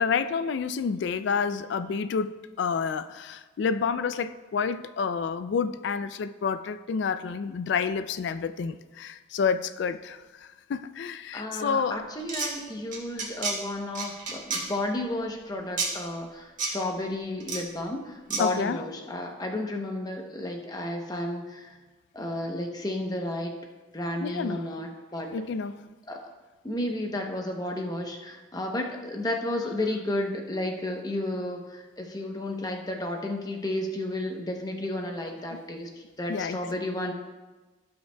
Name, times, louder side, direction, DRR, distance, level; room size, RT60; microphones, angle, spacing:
voice 1, 0.0-12.0 13.2-13.3 18.4-18.8 24.2-24.7 25.3-25.9 35.5-35.6 36.3-36.6, left 6 dB, 60° left, 12 dB, 0.3 m, -29 dB
voice 2, 11.3-21.8 22.1-23.5 23.9-25.3 26.1-26.3 26.6-35.9 36.2-37.1, left 1 dB, 20° left, 2 dB, 0.8 m, -32 dB
sound 1, 12.2-12.5 12.9-13.5 13.9-14.6 15.8-15.9 16.6-16.7 17.4-17.6 18.3-18.4, right 4 dB, 40° right, 1.7 m, -29 dB
16.0 x 5.7 x 2.3 m, 1.2 s
head